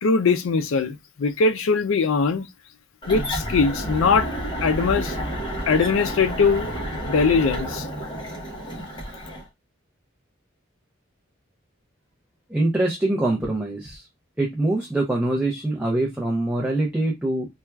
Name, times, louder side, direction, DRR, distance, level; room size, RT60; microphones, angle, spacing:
voice 1, 0.0-2.5 3.1-4.3 4.6-5.2 5.7-7.9, left 4 dB, 80° left, 0.4 m, -21 dB
sound 1, 3.0-9.5, equal, 25° left, 0.8 m, -30 dB
voice 2, 12.5-14.1 14.4-17.5, right 2 dB, 5° right, 0.5 m, -24 dB
4.2 x 2.3 x 2.2 m
head